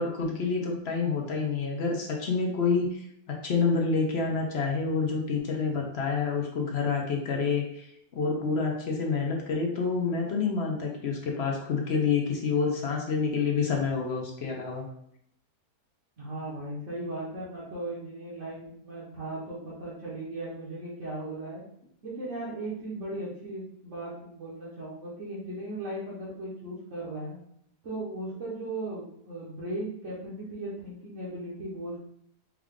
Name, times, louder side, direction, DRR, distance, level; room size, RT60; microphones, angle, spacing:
voice 1, 0.0-7.9 8.1-14.9, left 5 dB, 55° left, 0 dB, 0.8 m, -28 dB
voice 2, 16.2-21.6 22.0-27.4 27.8-32.0, right 1 dB, 55° right, -8 dB, 1.4 m, -37 dB
4.7 x 2.4 x 3.6 m, 0.73 s
omnidirectional pair, 1.6 m